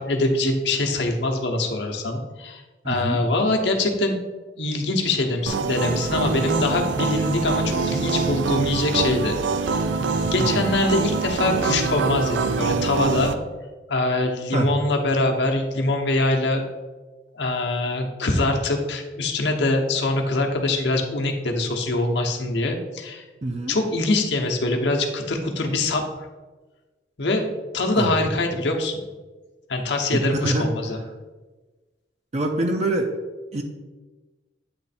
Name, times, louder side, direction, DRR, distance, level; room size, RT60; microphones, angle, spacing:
voice 1, 0.0-4.2 4.6-9.4 9.6-13.3 13.9-16.6 17.3-23.2 23.7-26.3 27.2-27.4 27.7-28.9 29.7-31.0, left 2 dB, 70° left, 2 dB, 0.9 m, -23 dB
voice 2, 2.8-3.2 10.4-10.5 14.5-14.7 23.4-23.8 28.0-28.1 30.1-30.7 32.3-33.1 33.5-33.6, right 2 dB, 40° right, 4 dB, 0.5 m, -24 dB
sound 1, 5.5-13.3, right 4 dB, 90° right, 0.4 m, -25 dB
8.5 x 3.2 x 4.2 m, 1.3 s
head